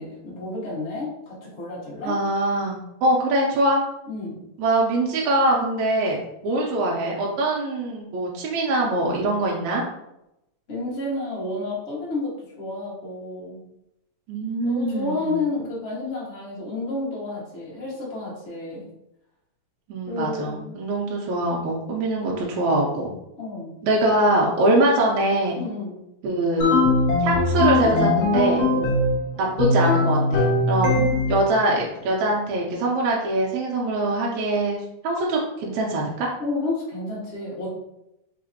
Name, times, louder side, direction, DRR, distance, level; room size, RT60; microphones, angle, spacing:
voice 1, 0.0-2.1 4.1-4.4 10.7-13.6 14.6-18.9 20.1-20.7 23.4-23.8 25.6-25.9 28.7-28.9 30.9-31.3 36.4-37.7, left 2 dB, 45° left, -6 dB, 0.8 m, -31 dB
voice 2, 2.0-3.8 4.6-6.2 6.4-9.8 14.3-15.4 19.9-23.1 23.8-25.6 26.2-26.8 27.2-28.6 29.4-31.0 31.3-36.3, right 1 dB, 80° right, -3 dB, 1.9 m, -23 dB
sound 1, 26.6-29.2 29.6-31.5, left 2 dB, 70° left, 1.3 m, -20 dB
4.1 x 3.7 x 2.7 m, 0.86 s
omnidirectional pair, 3.4 m